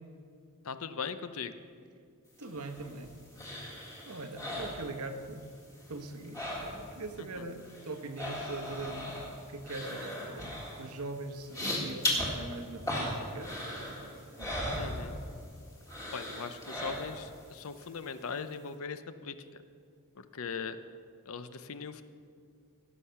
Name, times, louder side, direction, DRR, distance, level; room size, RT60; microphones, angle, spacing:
voice 1, 0.6-1.5 7.2-7.4 14.8-15.2 16.1-19.4 20.2-20.8 21.3-22.0, left 5 dB, 65° left, 11 dB, 0.6 m, -40 dB
sound 1, 2.4-5.5 5.7-7.1 7.3-15.5 15.9-17.4 17.8-17.9, left 1 dB, 15° left, 1.9 m, -38 dB
voice 2, 2.4-3.2 4.0-5.4 5.9-14.1 14.4-14.7, right 2 dB, 80° right, 6 dB, 1.0 m, -42 dB
16.5 x 6.5 x 5.7 m, 2.3 s
head